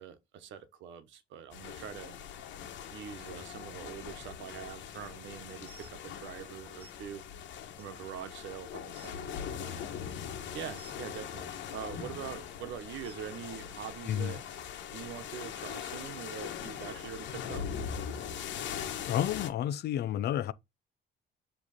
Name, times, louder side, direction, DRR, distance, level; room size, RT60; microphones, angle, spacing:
voice 1, 0.0-2.2 2.9-7.2 7.8-9.8 10.5-14.4 14.9-17.7, right 8 dB, 80° right, 1.1 m, -44 dB
sound 1, 1.5-19.5, left 8 dB, 75° left, 1.3 m, -41 dB
sound 2, 5.6-5.9 6.8-6.9 7.8-7.9 8.4-8.5 8.8-9.1 10.8-11.0 12.0-12.2 13.0-13.2 14.3-14.4 15.2-15.3 16.0-16.1, right 6 dB, 30° right, 0.6 m, -54 dB
voice 2, 19.0-20.5, left 11 dB, 60° left, 0.5 m, -31 dB
7.4 x 3.2 x 4.1 m
cardioid pair, 130°, 19 cm